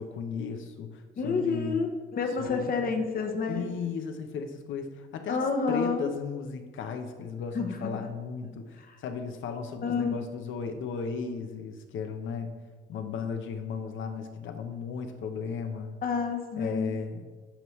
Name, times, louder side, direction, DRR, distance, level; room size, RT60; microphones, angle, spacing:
voice 1, 0.0-1.8 2.4-3.0 3.5-12.5 12.9-16.0 16.6-17.3, left 6 dB, 75° left, 7 dB, 0.8 m, -35 dB
voice 2, 1.2-3.6 5.3-6.1 7.5-8.1 8.9-9.0 9.8-10.2 16.0-17.0, left 4 dB, 45° left, 4 dB, 0.9 m, -29 dB
9.0 x 5.4 x 3.1 m, 1.5 s
cardioid pair, 90°, 20 cm